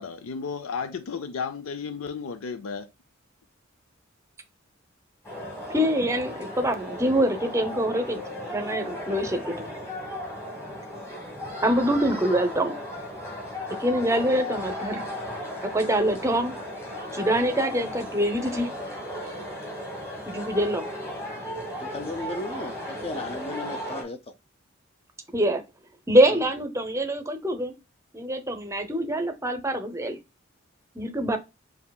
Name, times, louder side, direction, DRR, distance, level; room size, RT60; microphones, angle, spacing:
voice 1, 0.0-2.9, left 5 dB, 85° left, 0.5 m, -33 dB
sound 1, 5.2-24.0, left 1 dB, 15° left, 1.4 m, -36 dB
voice 2, 5.7-8.2 8.5-9.8 11.6-12.7 13.8-15.0 15.7-16.5 17.1-18.7 20.3-20.8 25.3-25.6 26.1-27.7 28.1-30.2 30.9-31.4, right 1 dB, 15° right, 0.6 m, -24 dB
voice 3, 21.8-24.2 26.3-26.4, left 2 dB, 30° left, 0.6 m, -35 dB
6.8 x 2.8 x 2.3 m
head